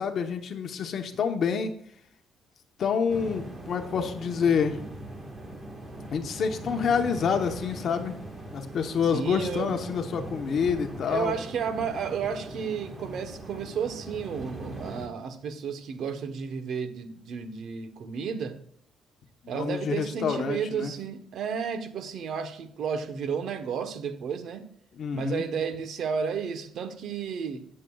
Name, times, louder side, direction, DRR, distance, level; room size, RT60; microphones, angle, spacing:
voice 1, 0.0-1.8 2.8-4.8 6.1-8.2 8.5-11.3 19.5-20.9 24.9-25.4, left 6 dB, 50° left, 0.9 m, -27 dB
sound 1, 3.1-15.1, right 1 dB, 20° right, 1.5 m, -40 dB
voice 2, 9.1-9.7 11.1-18.6 19.5-24.7 25.1-27.7, right 6 dB, 60° right, 1.0 m, -32 dB
17.5 x 7.5 x 2.3 m
cardioid pair, 140°, 0 cm